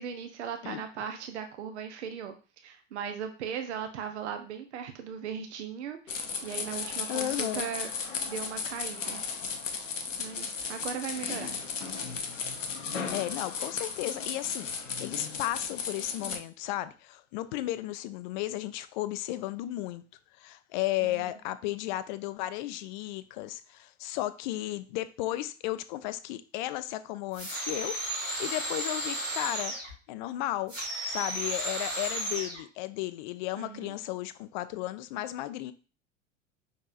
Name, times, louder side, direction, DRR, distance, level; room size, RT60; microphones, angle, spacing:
voice 1, 0.0-7.9 8.3-9.2 10.2-11.5 21.0-21.3 33.6-34.0, right 7 dB, 65° right, 0.7 m, -38 dB
voice 2, 0.6-1.1 7.1-7.7 12.8-14.7 15.0-20.0 20.4-29.7 30.1-30.7 31.0-35.7, left 15 dB, 40° left, 0.4 m, -34 dB
sound 1, 6.1-16.4, left 5 dB, 75° left, 0.7 m, -35 dB
sound 2, 27.3-29.9 30.7-32.6, right 1 dB, 85° right, 2.4 m, -34 dB
5.3 x 4.0 x 2.5 m
figure-of-eight pair, 80°, 38 cm